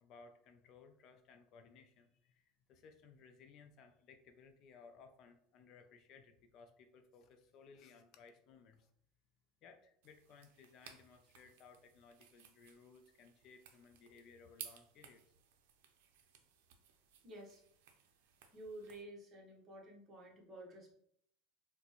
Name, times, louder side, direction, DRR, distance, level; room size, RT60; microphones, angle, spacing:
voice 1, 0.0-8.9 9.6-15.2, left 5 dB, 45° left, 7 dB, 0.4 m, -61 dB
sound 1, 10.0-19.0, right 9 dB, 85° right, 0.5 m, -59 dB
voice 2, 17.2-17.6 18.5-20.9, right 1 dB, 30° right, -1 dB, 0.9 m, -52 dB
4.2 x 2.1 x 2.9 m, 0.68 s
supercardioid pair, 140°, 0 cm